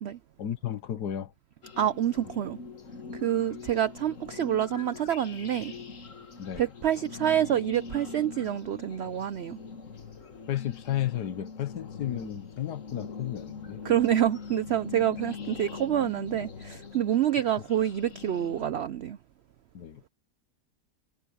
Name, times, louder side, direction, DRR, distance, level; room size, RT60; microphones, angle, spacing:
voice 1, 0.4-1.3 6.4-6.7 10.5-13.8 19.7-20.0, left 11 dB, 85° left, 1.6 m, -33 dB
sound 1, 1.6-18.7, left 5 dB, 50° left, 2.0 m, -43 dB
voice 2, 1.8-2.6 3.1-5.7 6.6-9.6 13.8-19.2, right 10 dB, 80° right, 0.5 m, -27 dB
omnidirectional pair, 1.7 m